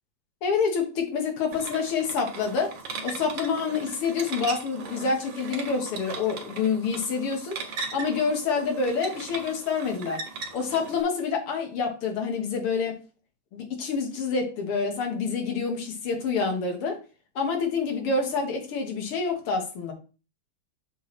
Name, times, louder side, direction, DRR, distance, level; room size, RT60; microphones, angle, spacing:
voice 1, 0.4-2.7 3.0-7.6 7.9-10.2 10.5-13.0 13.5-17.0 17.4-19.9, left 5 dB, 90° left, 3 dB, 2.4 m, -27 dB
sound 1, 1.5-11.0, right 4 dB, 60° right, 1.8 m, -38 dB
6.9 x 3.2 x 5.9 m, 0.34 s
omnidirectional pair, 2.4 m